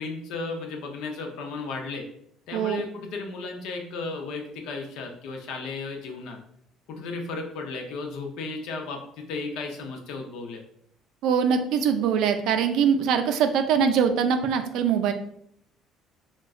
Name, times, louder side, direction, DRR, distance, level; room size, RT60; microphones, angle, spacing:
voice 1, 0.0-2.1 2.5-6.4 6.9-10.6, left 3 dB, 75° left, 3 dB, 0.5 m, -34 dB
voice 2, 2.5-2.8 11.2-15.1, right 7 dB, 75° right, 7 dB, 0.3 m, -23 dB
3.6 x 2.1 x 2.4 m, 0.70 s
cardioid pair, 115°, 0 cm